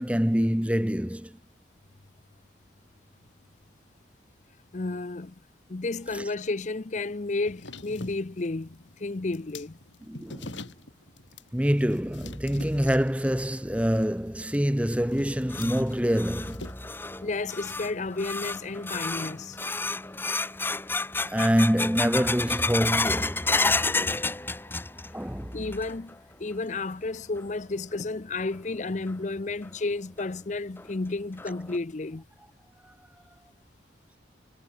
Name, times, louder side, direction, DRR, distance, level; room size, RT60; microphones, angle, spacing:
voice 1, 0.0-1.4 6.1-6.2 10.1-10.6 11.5-16.7 21.3-23.6 25.1-25.7, equal, 5° right, 1.2 m, -26 dB
voice 2, 4.7-5.3 5.7-9.8 17.2-19.6 24.7-24.8 25.5-32.2, left 3 dB, 40° left, 0.6 m, -32 dB
sound 1, 7.4-16.7, left 2 dB, 80° left, 5.7 m, -45 dB
sound 2, 15.1-25.3 25.5-26.1 26.5-26.6 27.4-27.5 29.1-29.2 29.6-29.7 30.2-30.3 30.8-30.9 31.4-31.8, left 3 dB, 10° left, 0.9 m, -30 dB
head